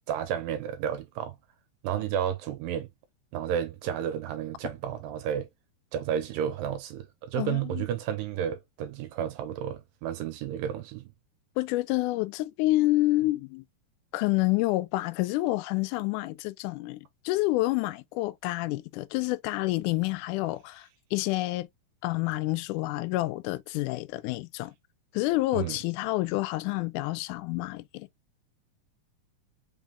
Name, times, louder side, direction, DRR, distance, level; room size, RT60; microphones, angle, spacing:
voice 1, 0.1-1.4 1.8-2.9 3.3-5.5 5.9-11.1 25.5-25.8, right 9 dB, 80° right, 2.3 m, -32 dB
voice 2, 7.4-7.9 11.6-13.6 14.1-21.7 22.0-24.7 25.1-28.1, left 19 dB, 85° left, 1.8 m, -28 dB
5.4 x 3.5 x 2.3 m
omnidirectional pair, 4.1 m